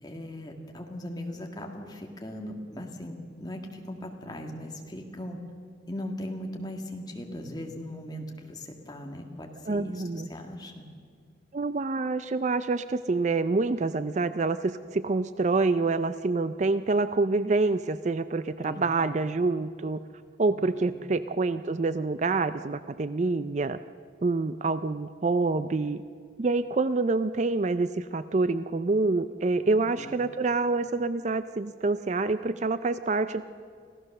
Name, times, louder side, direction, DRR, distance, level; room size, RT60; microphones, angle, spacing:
voice 1, 0.0-5.4 5.9-10.9 18.6-19.1 20.5-21.0 29.7-30.2, left 1 dB, 20° left, 2 dB, 1.9 m, -39 dB
voice 2, 9.7-10.3 11.5-20.0 20.4-23.8 24.2-26.0 26.4-33.4, right 3 dB, 40° right, 13 dB, 0.4 m, -27 dB
25.5 x 16.0 x 6.6 m, 2.1 s
head